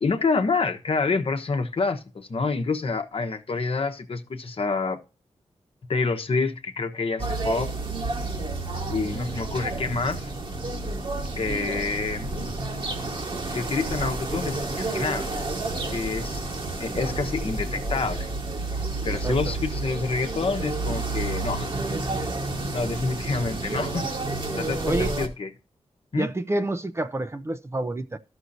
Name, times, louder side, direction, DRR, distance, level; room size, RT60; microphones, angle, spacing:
voice 1, 0.0-5.0 5.9-7.7 8.9-10.3 11.4-12.3 13.5-15.3 15.8-16.4 16.8-18.3 19.0-21.9 22.7-24.1 24.6-25.5 26.1-26.3, left 4 dB, 55° left, 1.0 m, -27 dB
sound 1, 7.2-25.3, right 2 dB, 45° right, 1.4 m, -30 dB
voice 2, 19.1-19.5 24.9-25.2 26.2-28.2, right 2 dB, 25° right, 0.6 m, -28 dB
13.0 x 6.2 x 2.7 m
cardioid pair, 70°, 11 cm